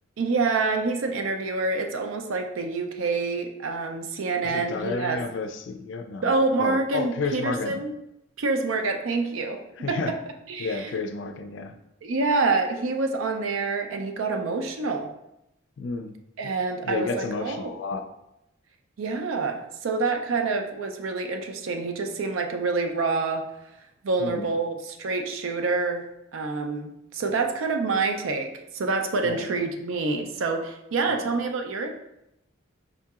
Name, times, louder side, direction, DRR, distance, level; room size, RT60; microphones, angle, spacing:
voice 1, 0.2-5.2 6.2-7.9 8.4-9.6 9.9-10.0 10.5-10.9 12.0-15.1 16.4-17.7 19.0-23.5 24.0-26.0 26.3-31.9, right 3 dB, 80° right, 5 dB, 0.5 m, -27 dB
voice 2, 4.4-6.3 6.6-7.8 9.8-10.2 10.6-11.7 15.8-16.2 16.4-16.5 16.8-18.1 24.2-24.5 29.2-29.5 31.1-31.3, left 4 dB, 65° left, 8 dB, 0.3 m, -31 dB
4.9 x 2.7 x 2.4 m, 0.86 s
head